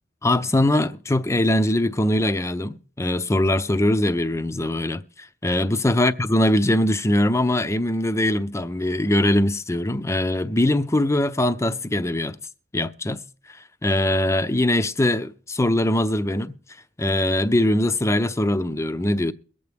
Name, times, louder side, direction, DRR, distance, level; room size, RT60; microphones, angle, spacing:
voice 1, 0.2-12.4 12.7-13.2 13.5-16.6 17.0-19.3, left 1 dB, 15° left, 0.6 m, -22 dB
22.0 x 8.2 x 3.4 m
head